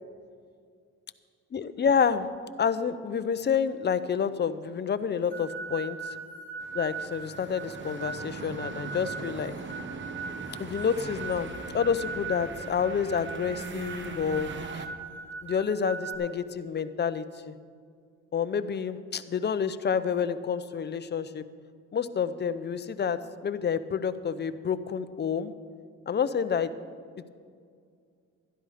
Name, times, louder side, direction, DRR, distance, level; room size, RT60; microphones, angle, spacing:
voice 1, 1.5-2.3 2.6-6.2 6.7-9.5 10.6-14.8 15.4-17.5 18.3-21.4 21.9-25.5 26.1-26.7, left 7 dB, 35° left, 13 dB, 0.7 m, -29 dB
sound 1, 5.3-16.2, right 4 dB, 5° left, 3.5 m, -40 dB
sound 2, 6.6-14.9, right 4 dB, 40° right, 0.9 m, -41 dB
12.0 x 12.0 x 5.0 m, 2.2 s
cardioid pair, 90°, 30 cm